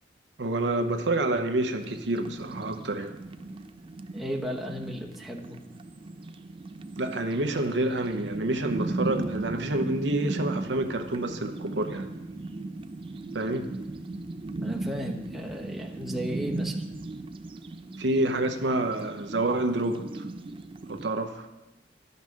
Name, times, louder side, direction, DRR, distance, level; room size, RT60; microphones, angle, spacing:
voice 1, 0.4-3.1 7.0-12.1 13.3-13.7 18.0-20.2 20.9-21.5, right 2 dB, 90° right, 6 dB, 0.9 m, -28 dB
sound 1, 1.8-21.1, right 2 dB, 30° right, 0.4 m, -37 dB
voice 2, 4.1-5.6 14.5-16.8, equal, ahead, -1 dB, 1.1 m, -35 dB
12.0 x 5.4 x 6.3 m, 1.0 s
head